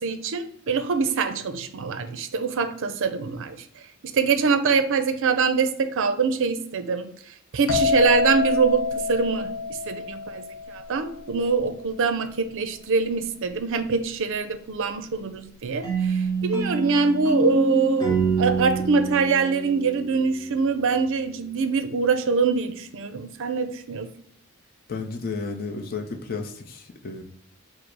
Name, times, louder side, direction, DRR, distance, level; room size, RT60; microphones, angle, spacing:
voice 1, 0.0-3.6 4.0-7.1 7.5-24.1, right 5 dB, 60° right, 9 dB, 0.5 m, -24 dB
sound 1, 7.7-11.3, left 4 dB, 65° left, 1.0 m, -26 dB
sound 2, 15.8-20.7, right 4 dB, 20° left, 1.1 m, -26 dB
voice 2, 24.9-27.2, left 4 dB, 45° left, 3 dB, 0.5 m, -32 dB
5.0 x 2.0 x 4.5 m, 0.65 s
head